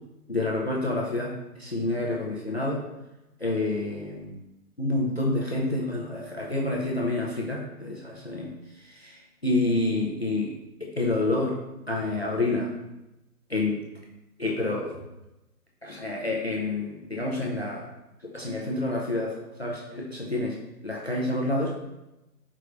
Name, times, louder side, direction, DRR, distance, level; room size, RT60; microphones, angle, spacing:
voice 1, 0.3-1.3 1.6-2.8 3.4-4.4 4.8-8.5 8.8-10.5 10.8-11.6 11.9-12.7 13.5-13.8 14.4-15.0 15.8-17.9 18.2-19.3 19.6-20.6 20.8-21.8, left 2 dB, 45° left, -3 dB, 0.4 m, -28 dB
4.7 x 3.1 x 2.4 m, 0.97 s
hypercardioid pair, 175°, 47 cm